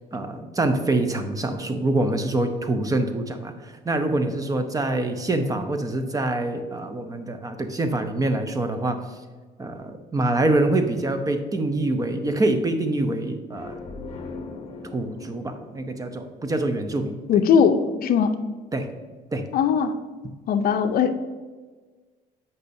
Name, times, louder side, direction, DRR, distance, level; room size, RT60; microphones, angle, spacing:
voice 1, 0.1-9.0 9.6-13.8 14.9-17.2 18.7-18.9 19.3-19.4, right 2 dB, 20° right, 7 dB, 0.6 m, -25 dB
sound 1, 13.5-17.2, left 3 dB, 35° left, 0.9 m, -40 dB
voice 2, 17.3-18.4 19.5-19.9 20.5-21.1, left 7 dB, 60° left, 9 dB, 0.5 m, -19 dB
8.2 x 5.4 x 2.6 m, 1.4 s
cardioid pair, 110°, 17 cm